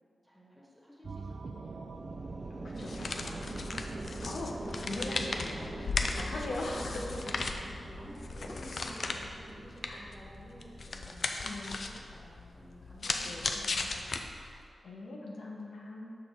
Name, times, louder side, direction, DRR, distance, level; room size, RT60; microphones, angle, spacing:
voice 1, 0.2-2.1 3.8-4.4 5.3-5.8 6.9-14.4, equal, ahead, -4 dB, 1.7 m, -52 dB
sound 1, 1.0-9.3, right 4 dB, 60° right, 0.4 m, -47 dB
sound 2, 1.8-11.7, right 2 dB, 30° right, 0.8 m, -44 dB
voice 2, 2.6-3.8 4.2-5.6 6.0-7.0 9.9-10.1 11.4-11.7 13.2-13.7 14.8-16.2, left 2 dB, 85° left, -3 dB, 1.1 m, -41 dB
sound 3, 2.8-14.6, left 3 dB, 60° left, 0.5 m, -37 dB
6.6 x 6.0 x 4.7 m, 2.4 s
cardioid pair, 75°, 0 cm